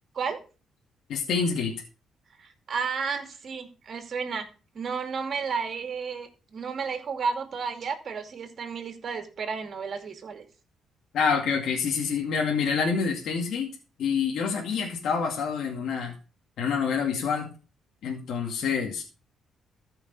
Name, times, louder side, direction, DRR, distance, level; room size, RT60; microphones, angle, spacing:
voice 1, 1.1-1.7 11.1-13.7 14.0-16.1 16.6-17.5 18.0-19.0, left 6 dB, 75° left, 0 dB, 2.2 m, -27 dB
voice 2, 2.4-4.5 4.7-10.5, right 5 dB, 50° right, 6 dB, 2.4 m, -32 dB
14.0 x 5.6 x 5.4 m, 0.34 s
cardioid pair, 90°, 0 cm